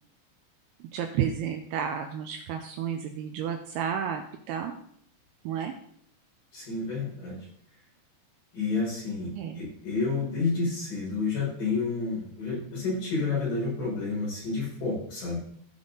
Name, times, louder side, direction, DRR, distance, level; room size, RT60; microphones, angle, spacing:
voice 1, 0.9-4.8 5.5-5.7 9.3-9.6, right 8 dB, 85° right, 5 dB, 2.4 m, -31 dB
voice 2, 6.5-7.4 8.5-9.3 9.6-15.4, left 4 dB, 50° left, -6 dB, 5.7 m, -30 dB
15.5 x 5.3 x 3.9 m, 0.66 s
omnidirectional pair, 5.1 m